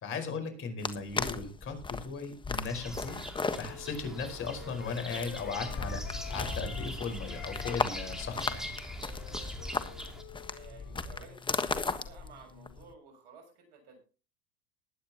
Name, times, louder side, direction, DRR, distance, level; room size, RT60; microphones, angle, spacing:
voice 1, 0.0-3.2 3.6-8.7, left 4 dB, 45° left, 6 dB, 5.0 m, -37 dB
sound 1, 0.8-12.9, left 4 dB, 15° left, 1.3 m, -36 dB
sound 2, 2.6-10.2, equal, ahead, 2.8 m, -43 dB
Wind instrument woodwind instrument, 3.6-6.9 7.3-11.8, left 14 dB, 65° left, 1.6 m, -51 dB
voice 2, 10.4-14.0, right 4 dB, 70° right, 4 dB, 7.2 m, -54 dB
20.5 x 9.1 x 3.0 m, 0.35 s
hypercardioid pair, 95°, 31 cm